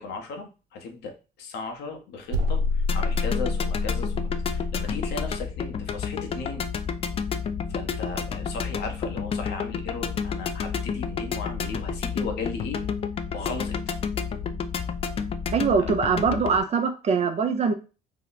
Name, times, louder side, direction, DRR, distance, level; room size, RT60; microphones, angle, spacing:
voice 1, 0.0-6.6 7.7-12.8 13.3-13.8 15.7-15.9, left 4 dB, 80° left, 4 dB, 0.9 m, -36 dB
sound 1, 2.3-5.4, left 3 dB, 90° right, 0.5 m, -27 dB
sound 2, 2.9-16.6, left 6 dB, 35° left, 0.3 m, -30 dB
voice 2, 15.5-17.7, right 5 dB, 40° right, 6 dB, 0.5 m, -23 dB
2.9 x 2.1 x 4.0 m, 0.32 s
cardioid pair, 110°, 17 cm